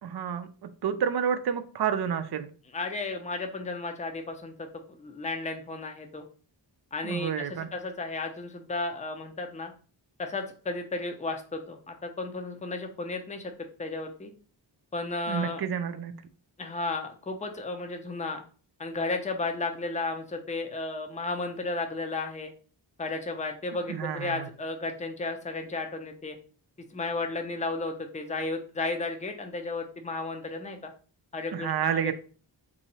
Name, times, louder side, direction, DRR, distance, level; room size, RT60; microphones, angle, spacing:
voice 1, 0.0-2.5 7.0-7.7 15.3-16.1 23.9-24.5 31.5-32.1, right 8 dB, 60° right, 10 dB, 0.5 m, -29 dB
voice 2, 2.7-6.3 6.9-9.7 10.2-13.5 13.8-14.3 14.9-15.6 16.6-18.4 18.8-22.5 23.0-26.4 26.9-30.9 31.3-32.1, left 3 dB, 15° left, 4 dB, 0.6 m, -33 dB
2.8 x 2.7 x 4.1 m, 0.39 s
wide cardioid pair, 70°, 45 cm